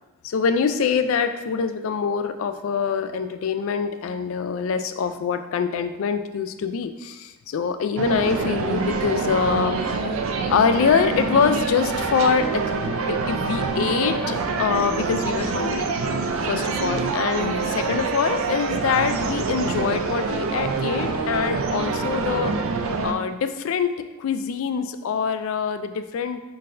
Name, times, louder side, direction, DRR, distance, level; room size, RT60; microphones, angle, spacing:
voice 1, 0.2-10.0 10.5-15.9 16.5-22.5 23.0-26.4, left 6 dB, 65° left, 9 dB, 0.3 m, -24 dB
sound 1, 8.0-23.1, right 4 dB, 65° right, 0.4 m, -26 dB
5.4 x 3.9 x 2.5 m, 1.1 s
head